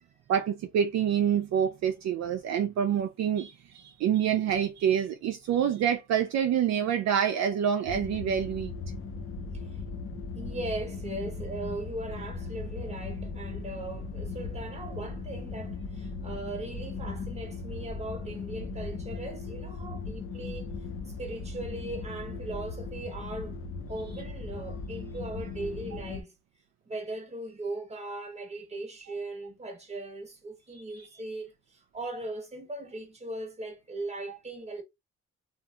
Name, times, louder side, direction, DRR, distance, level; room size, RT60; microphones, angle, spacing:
voice 1, 0.3-8.7 30.9-31.1 34.3-34.4, right 8 dB, 60° right, 0.5 m, -27 dB
sound 1, 7.8-26.2, left 4 dB, 45° left, 0.6 m, -38 dB
voice 2, 10.3-20.7 21.1-23.6 23.9-26.3 26.9-34.8, right 2 dB, 20° right, 1.0 m, -39 dB
2.7 x 2.5 x 2.3 m
cardioid pair, 90°, 30 cm